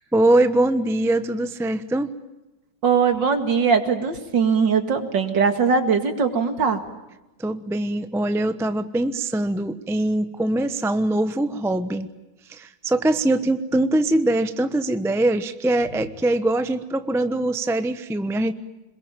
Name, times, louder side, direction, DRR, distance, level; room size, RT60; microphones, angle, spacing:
voice 1, 0.0-2.1 7.4-12.1 12.5-18.5, right 1 dB, 5° right, 10 dB, 0.5 m, -22 dB
voice 2, 2.8-6.8, right 5 dB, 60° right, 7 dB, 2.8 m, -20 dB
26.5 x 22.0 x 9.1 m, 1.0 s
omnidirectional pair, 2.2 m